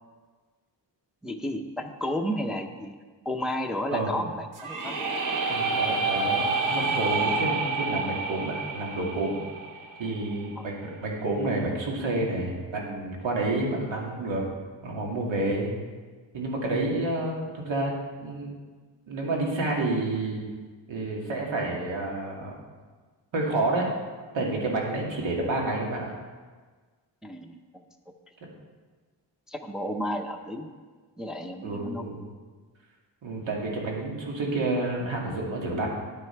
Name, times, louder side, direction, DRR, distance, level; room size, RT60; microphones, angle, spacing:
voice 1, 1.2-3.0 3.2-5.1 10.6-10.7 27.2-27.8 29.5-30.7 31.2-32.1, left 1 dB, ahead, 3 dB, 0.5 m, -32 dB
sound 1, 4.5-10.4, right 3 dB, 45° right, 1.2 m, -28 dB
voice 2, 5.5-9.4 10.0-14.5 14.8-15.7 16.3-18.5 19.1-20.4 20.9-22.6 23.3-23.9 24.3-26.1 31.6-32.2 33.2-35.9, right 2 dB, 85° right, -1 dB, 2.4 m, -29 dB
9.9 x 9.2 x 4.5 m, 1.4 s
wide cardioid pair, 165°, 44 cm